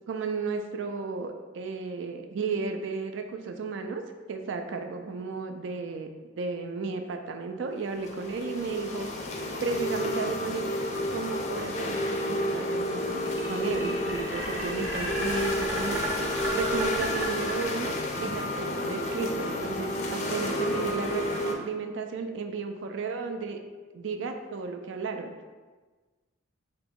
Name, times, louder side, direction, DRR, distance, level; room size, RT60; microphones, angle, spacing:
voice 1, 0.1-4.0 4.3-6.1 6.4-9.1 9.6-10.7 11.1-16.2 16.5-19.9 20.3-23.6 23.9-25.3, right 4 dB, 65° right, 5 dB, 0.3 m, -33 dB
sound 1, 7.8-21.5, left 1 dB, 35° left, 0.4 m, -31 dB
sound 2, 13.2-18.2, right 1 dB, 5° right, 0.7 m, -34 dB
2.9 x 2.9 x 3.5 m, 1.3 s
head